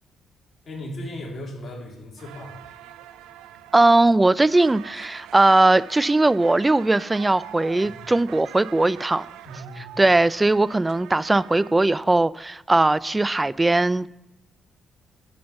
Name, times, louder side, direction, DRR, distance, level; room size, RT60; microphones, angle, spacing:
voice 1, 0.7-2.5 7.8-8.0 9.4-10.0, left 1 dB, 50° left, -2 dB, 3.5 m, -37 dB
sound 1, 2.2-11.7, right 12 dB, 90° right, 0.4 m, -44 dB
voice 2, 3.7-9.3 10.0-14.1, right 2 dB, 20° right, 19 dB, 0.4 m, -19 dB
10.5 x 5.1 x 7.1 m, 0.94 s
cardioid pair, 70°, 0 cm